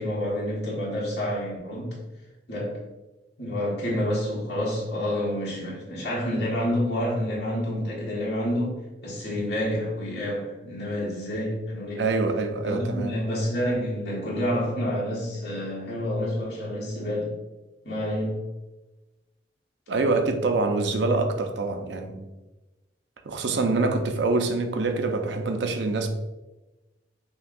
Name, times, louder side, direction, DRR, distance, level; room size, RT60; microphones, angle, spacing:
voice 1, 0.0-2.0 2.5-2.8 3.4-8.8 9.0-12.1 12.6-17.3 17.8-18.4, equal, 65° left, 1.4 m, -28 dB
voice 2, 12.0-13.1 19.9-22.3 23.2-26.1, right 3 dB, 75° right, 0.5 m, -25 dB
5.6 x 2.3 x 2.6 m
head